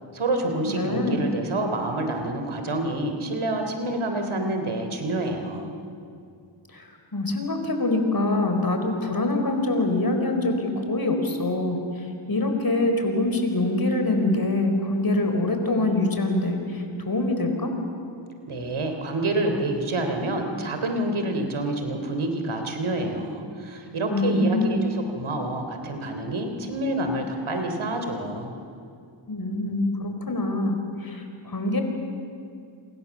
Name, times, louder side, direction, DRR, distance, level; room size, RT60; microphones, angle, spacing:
voice 1, 0.1-5.7 18.5-28.5, right 2 dB, 80° right, 5 dB, 3.6 m, -28 dB
voice 2, 0.7-1.2 6.7-11.8 12.3-17.7 24.1-24.7 29.3-31.8, left 2 dB, 45° left, 5 dB, 4.7 m, -24 dB
28.5 x 25.5 x 7.3 m, 2.4 s
cardioid pair, 55°, 48 cm